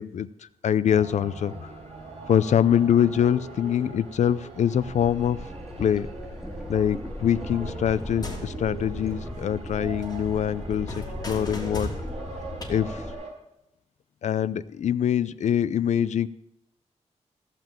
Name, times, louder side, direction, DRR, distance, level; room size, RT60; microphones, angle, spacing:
voice 1, 0.0-1.7 2.3-5.4 5.8-6.1 6.7-11.9 12.7-13.0 14.2-16.3, left 9 dB, 85° left, 16 dB, 0.5 m, -24 dB
sound 1, 0.9-13.3, right 2 dB, 65° right, 5.6 m, -42 dB
sound 2, 4.8-13.1, equal, 5° right, 2.4 m, -37 dB
sound 3, 7.9-9.8 10.0-12.7, left 1 dB, 35° left, 3.3 m, -39 dB
16.5 x 5.9 x 8.9 m, 0.83 s
wide cardioid pair, 150°, 12 cm